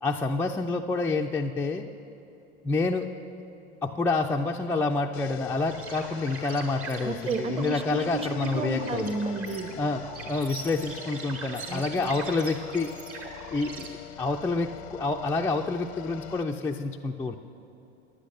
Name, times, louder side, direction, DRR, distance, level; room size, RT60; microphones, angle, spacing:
voice 1, 0.0-1.9 2.6-3.1 3.8-9.1 9.8-12.9 13.5-17.4, left 3 dB, 10° left, 0 dB, 0.3 m, -28 dB
sound 1, 5.1-16.4, left 13 dB, 80° left, 0.5 m, -44 dB
sound 2, 5.7-13.9, right 4 dB, 45° right, 1.8 m, -42 dB
voice 2, 7.0-9.7 11.7-12.1, right 3 dB, 20° right, 8 dB, 0.8 m, -32 dB
10.0 x 9.7 x 6.6 m, 2.9 s
hypercardioid pair, 90°, 33 cm